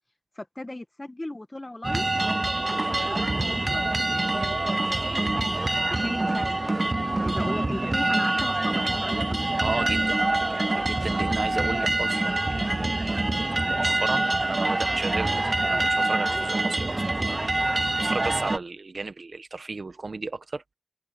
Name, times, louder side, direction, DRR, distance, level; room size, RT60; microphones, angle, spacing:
voice 1, 0.4-2.0 2.4-3.9 5.9-9.4, left 1 dB, 35° left, 1.6 m, -37 dB
sound 1, 1.8-18.6, right 2 dB, 50° right, 0.4 m, -25 dB
voice 2, 9.6-13.2 13.6-20.7, right 3 dB, 90° right, 1.2 m, -34 dB
wide cardioid pair, 45°, 0 cm